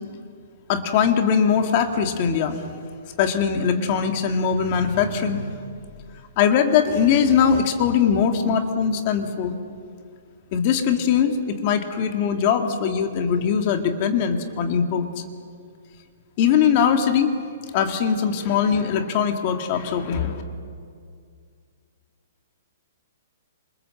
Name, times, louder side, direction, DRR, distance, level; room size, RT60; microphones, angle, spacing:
voice 1, 0.7-2.6 3.2-5.6 6.4-9.6 10.5-15.1 16.4-17.3 17.7-20.4, left 7 dB, 30° left, 5 dB, 2.0 m, -21 dB
27.5 x 27.0 x 7.7 m, 2.2 s
hypercardioid pair, 175°, 0 cm